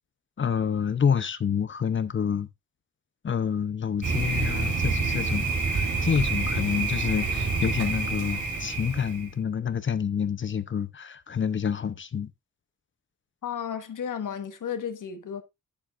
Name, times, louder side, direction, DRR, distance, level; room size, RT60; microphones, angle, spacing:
voice 1, 0.4-2.5 3.2-12.3, left 7 dB, 40° left, 0.6 m, -28 dB
Thunder, 4.0-9.3, right 4 dB, 65° right, 2.4 m, -28 dB
voice 2, 13.4-15.4, left 8 dB, 75° left, 1.3 m, -33 dB
10.0 x 7.3 x 2.5 m
wide cardioid pair, 165°, 32 cm